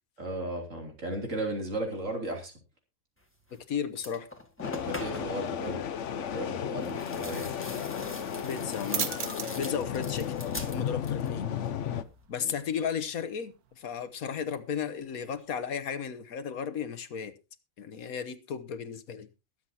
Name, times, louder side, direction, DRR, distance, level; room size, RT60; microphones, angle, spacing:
voice 1, 0.2-2.5 4.7-5.8 6.3-7.5 12.4-12.5, right 1 dB, 60° right, 3.5 m, -35 dB
sound 1, 3.5-3.6 3.9-5.4 6.8-11.4 11.7-12.3, left 1 dB, 10° left, 1.9 m, -43 dB
voice 2, 3.7-4.3 8.4-9.1 9.5-10.3 10.7-11.5 12.3-17.3 17.8-19.3, left 7 dB, 75° left, 1.5 m, -34 dB
sound 2, 4.6-12.0, left 8 dB, 60° left, 1.1 m, -34 dB
sound 3, 8.3-15.6, right 9 dB, 90° right, 1.5 m, -42 dB
22.0 x 8.1 x 2.9 m
omnidirectional pair, 1.5 m